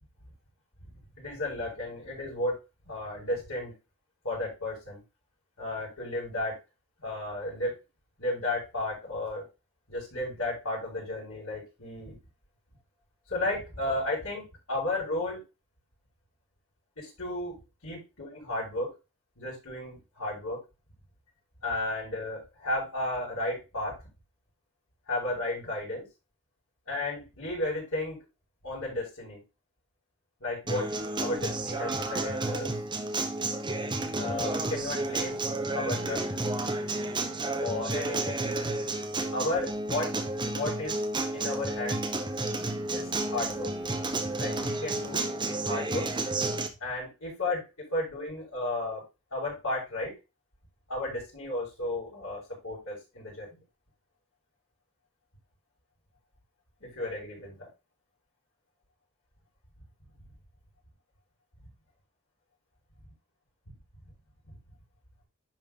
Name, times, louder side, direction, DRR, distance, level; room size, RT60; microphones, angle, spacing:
voice 1, 1.2-2.6 2.9-3.7 4.2-5.0 5.6-6.6 7.0-7.7 8.2-9.5 9.9-12.2 13.3-15.4 17.0-17.6 17.8-18.9 19.4-20.6 21.6-24.0 25.1-26.1 26.9-28.2 28.6-29.4 30.4-30.9 31.2-32.7 34.1-35.4 35.7-36.3 37.6-38.4 39.3-40.2 40.5-41.0 41.3-42.0 42.9-43.7 44.4-45.3 45.7-46.1 46.8-49.0 49.3-50.1 50.9-53.6 56.8-57.7 61.6-61.7 64.4-64.6, left 2 dB, 80° left, -6 dB, 5.2 m, -33 dB
Acoustic guitar, 30.7-46.7, right 2 dB, 20° right, 1.0 m, -31 dB
10.5 x 4.1 x 3.7 m, 0.27 s
head